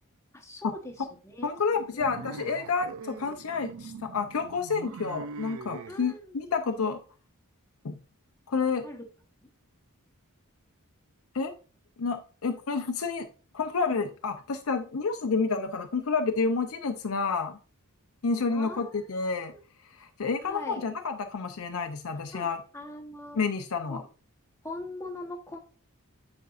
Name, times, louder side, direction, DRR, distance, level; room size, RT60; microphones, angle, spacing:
voice 1, 0.3-0.9 1.2-1.5 1.8-2.1 5.9-6.3 8.8-9.0 18.5-19.1 19.5-19.6 20.4-20.8 22.3-22.5 22.7-23.4 23.9-24.1 24.6-25.6, left 2 dB, 15° left, 2 dB, 1.1 m, -41 dB
voice 2, 1.4-7.0 7.8-8.0 8.5-8.9 11.3-11.5 12.0-13.3 13.5-17.6 18.2-19.5 19.9-22.6 23.3-24.0, left 4 dB, 70° left, 5 dB, 0.6 m, -29 dB
sound 1, 2.0-6.0, right 5 dB, 65° right, 0.4 m, -42 dB
9.3 x 5.3 x 2.5 m, 0.38 s
head